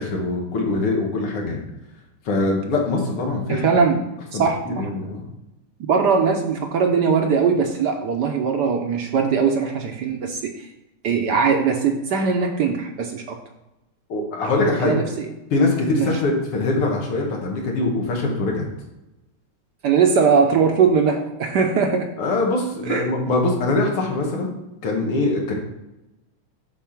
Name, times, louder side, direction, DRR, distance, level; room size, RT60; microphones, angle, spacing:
voice 1, 0.0-1.6 2.3-3.6 4.3-5.3 14.1-14.9 15.5-18.7 22.2-24.5 24.8-25.5, left 2 dB, 90° left, 0 dB, 2.5 m, -23 dB
voice 2, 3.5-4.0 4.3-4.9 5.9-10.7 11.0-13.4 14.4-14.5 14.8-15.3 16.0-16.2 19.8-22.1 22.9-23.1, right 5 dB, 65° right, 4 dB, 1.1 m, -20 dB
9.3 x 4.2 x 5.9 m, 0.94 s
omnidirectional pair, 2.4 m